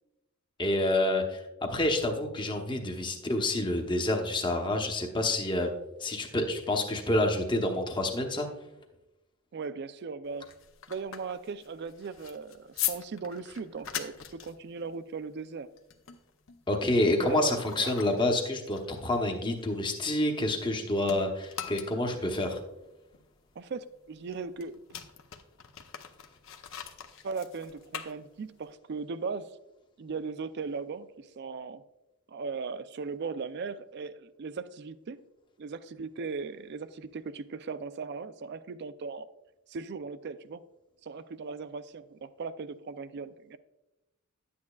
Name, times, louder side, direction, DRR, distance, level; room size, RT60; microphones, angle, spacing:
voice 1, 0.6-1.4 1.7-5.7 6.0-8.5 16.7-22.6, left 1 dB, 20° left, 3 dB, 0.9 m, -28 dB
voice 2, 9.5-10.5 10.9-15.7 17.2-17.9 23.6-24.8 27.2-29.6 30.0-31.8 32.3-35.2 35.6-39.3 39.7-40.6 41.0-43.6, right 4 dB, 50° right, 13 dB, 0.4 m, -38 dB
sound 1, 10.2-20.7 21.0-28.7, left 10 dB, 65° left, 0.7 m, -42 dB
10.5 x 8.5 x 2.3 m, 0.96 s
head